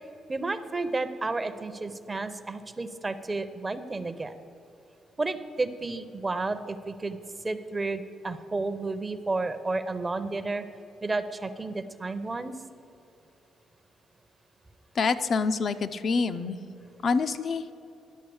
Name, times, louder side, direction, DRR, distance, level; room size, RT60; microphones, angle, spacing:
voice 1, 0.3-4.4 5.2-7.2 7.4-10.6 11.0-12.5, right 3 dB, 25° right, 11 dB, 0.6 m, -31 dB
voice 2, 14.9-16.6 17.0-17.7, left 4 dB, 50° left, 9 dB, 0.4 m, -26 dB
10.5 x 6.3 x 7.0 m, 2.8 s
cardioid pair, 90°, 0 cm